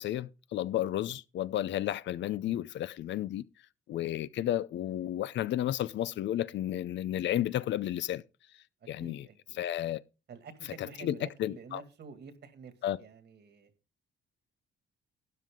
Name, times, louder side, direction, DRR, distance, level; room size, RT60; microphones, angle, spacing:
voice 1, 0.0-3.4 3.9-8.2 8.9-9.3 9.5-10.0 10.8-11.8 12.8-13.0, left 12 dB, 65° left, 0.5 m, -32 dB
voice 2, 9.0-9.6 10.3-12.7 13.0-13.7, right 5 dB, 60° right, 2.1 m, -49 dB
12.5 x 9.2 x 3.7 m
cardioid pair, 90°, 20 cm